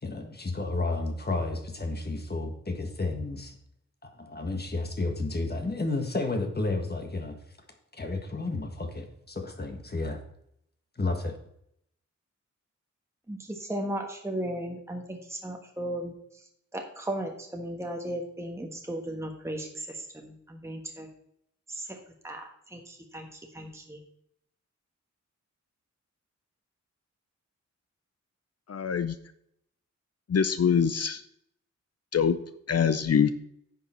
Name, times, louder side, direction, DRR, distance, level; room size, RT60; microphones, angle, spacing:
voice 1, 0.0-3.5 4.0-7.4 7.9-10.2 11.0-11.3, left 2 dB, 35° left, 4 dB, 1.5 m, -31 dB
voice 2, 13.3-16.1 16.7-21.1 21.7-22.0 22.2-24.0, right 1 dB, 10° right, 2 dB, 1.2 m, -36 dB
voice 3, 28.7-29.1 30.3-31.2 32.1-32.4 32.7-33.3, left 7 dB, 55° left, 11 dB, 0.6 m, -24 dB
10.0 x 6.7 x 4.3 m, 0.72 s
wide cardioid pair, 140°, 29 cm